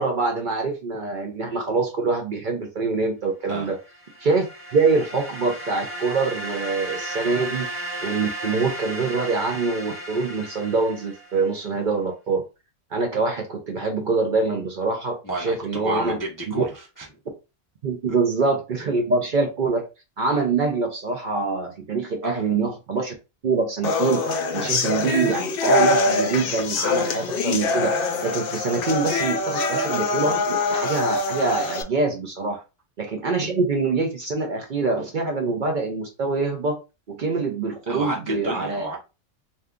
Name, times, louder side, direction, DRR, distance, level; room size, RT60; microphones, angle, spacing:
voice 1, 0.0-3.8 4.2-4.5 4.7-7.7 8.0-12.4 12.9-16.2 16.6-16.7 17.8-19.8 20.2-23.1 23.4-27.9 28.2-32.6 33.0-36.8 37.1-38.9, right 4 dB, 55° right, 0.6 m, -24 dB
sound 1, 3.8-11.6, right 1 dB, 15° right, 0.7 m, -34 dB
voice 2, 15.2-17.1 22.2-22.4 32.5-32.6 37.9-39.0, right 1 dB, 30° left, 0.4 m, -31 dB
sound 2, 23.8-31.8, left 3 dB, 60° left, 0.6 m, -24 dB
2.7 x 2.3 x 3.5 m
omnidirectional pair, 1.2 m